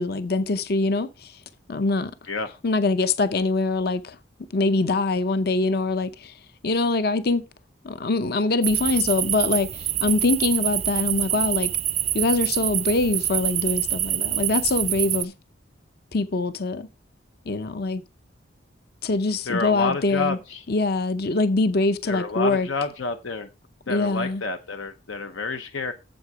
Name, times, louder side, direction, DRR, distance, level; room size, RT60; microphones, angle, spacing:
voice 1, 0.0-1.4 1.7-2.1 2.6-4.2 4.5-6.3 6.6-7.4 7.8-11.7 12.1-15.3 16.1-16.9 17.5-18.0 19.0-20.4 20.7-22.7 23.9-24.4, left 3 dB, 50° left, 0.6 m, -23 dB
sound 1, 8.6-15.2, right 12 dB, 30° right, 0.4 m, -26 dB
voice 2, 19.5-20.6 22.0-23.5 23.9-25.9, left 4 dB, 85° left, 0.8 m, -29 dB
7.8 x 7.5 x 4.8 m
head